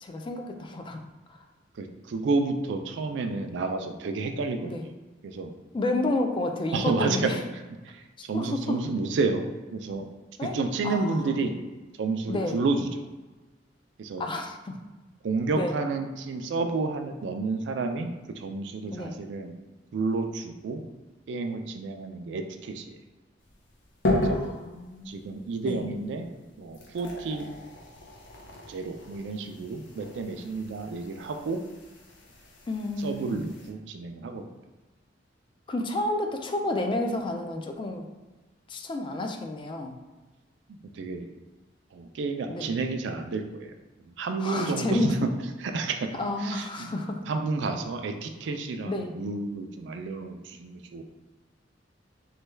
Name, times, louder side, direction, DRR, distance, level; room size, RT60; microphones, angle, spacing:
voice 1, 0.0-1.0 1.3-1.4 4.6-4.8 5.7-7.4 8.3-8.8 10.4-10.5 10.8-11.3 12.3-12.6 14.2-14.8 15.5-15.7 18.9-19.2 24.3-25.2 25.6-25.8 32.7-33.4 35.7-38.1 38.7-39.9 42.5-42.7 44.4-45.2 46.1-47.2 48.8-49.1, left 2 dB, 25° left, 4 dB, 0.3 m, -30 dB
voice 2, 1.7-4.7 5.2-5.5 6.7-7.3 7.8-8.0 8.3-10.1 10.4-11.5 12.0-12.9 14.0-14.3 15.2-18.1 18.4-19.6 19.9-20.8 21.3-22.9 24.2-24.6 25.1-26.3 26.6-27.4 28.7-31.6 33.0-34.4 40.9-41.3 41.9-43.7 44.0-45.3 45.6-46.9 47.3-51.0, right 3 dB, 70° right, 5 dB, 0.3 m, -30 dB
sound 1, 23.4-33.7, left 1 dB, 85° left, 0.6 m, -35 dB
3.2 x 2.2 x 3.2 m, 1.2 s
head